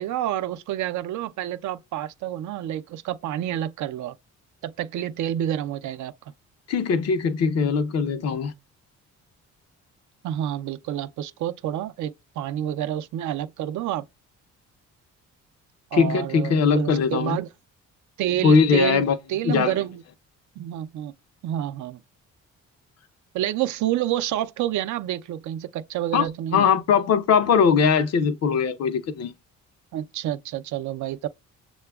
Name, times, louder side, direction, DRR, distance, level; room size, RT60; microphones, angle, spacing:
voice 1, 0.0-4.1 4.6-6.1 10.2-14.0 15.9-17.5 18.2-20.0 20.6-21.1 21.4-22.0 23.3-26.7 29.9-31.3, right 12 dB, 75° right, 0.5 m, -28 dB
voice 2, 6.7-8.5 15.9-17.4 18.4-19.2 19.4-19.7 26.1-26.3 26.5-29.3, left 6 dB, 55° left, 0.6 m, -20 dB
6.6 x 2.2 x 2.3 m
cardioid pair, 90°, 30 cm